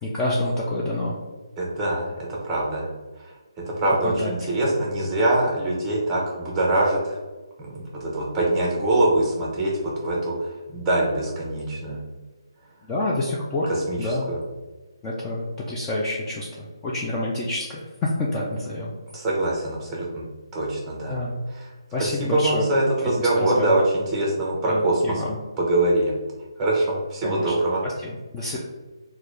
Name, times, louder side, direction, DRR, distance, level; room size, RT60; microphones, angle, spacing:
voice 1, 0.0-1.2 4.0-4.3 4.6-4.7 12.8-13.7 14.0-14.3 15.0-18.9 21.1-21.4 21.9-22.7 23.0-23.8 24.6-25.4 27.2-27.5 27.8-28.6, left 1 dB, 15° left, -5 dB, 0.3 m, -28 dB
voice 2, 1.6-2.9 3.7-7.2 7.6-12.0 13.7-14.0 14.3-14.4 19.1-20.2 20.5-21.2 21.6-21.7 22.0-25.2 25.6-26.1 26.6-27.8 28.5-28.6, right 1 dB, 10° right, -3 dB, 0.7 m, -23 dB
3.7 x 2.2 x 3.1 m, 1.3 s
hypercardioid pair, 160°, 3 cm